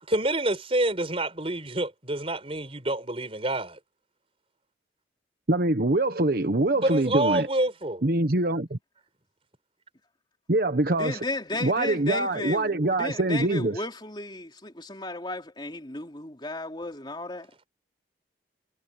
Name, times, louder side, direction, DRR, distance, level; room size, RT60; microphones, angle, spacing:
voice 1, 0.0-3.8 6.7-8.1, right 1 dB, 35° right, 4.8 m, -27 dB
voice 2, 5.5-7.5 8.0-8.8 10.5-11.2 11.6-13.8, right 2 dB, 55° right, 1.2 m, -24 dB
voice 3, 11.0-17.5, left 2 dB, 25° left, 3.2 m, -34 dB
head